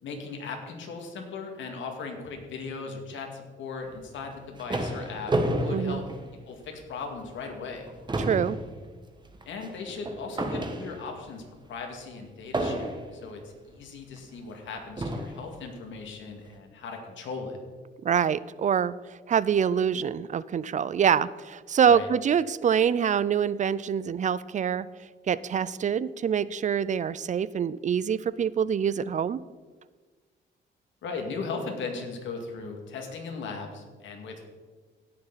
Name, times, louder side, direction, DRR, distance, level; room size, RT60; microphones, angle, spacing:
voice 1, 0.0-6.0 6.5-7.9 9.4-11.4 11.7-17.6 21.9-22.1 31.0-34.5, left 4 dB, 70° left, 3 dB, 2.2 m, -38 dB
sound 1, 4.2-6.8 7.3-7.4 7.8-11.3 12.5-13.3 14.2-14.3 15.0-15.5, right 1 dB, 20° right, 1.3 m, -31 dB
voice 2, 5.7-6.0 8.2-8.6 18.0-24.9 25.3-29.4, right 8 dB, 40° right, 18 dB, 0.4 m, -25 dB
17.0 x 6.8 x 4.1 m, 1.4 s
cardioid pair, 90°, 20 cm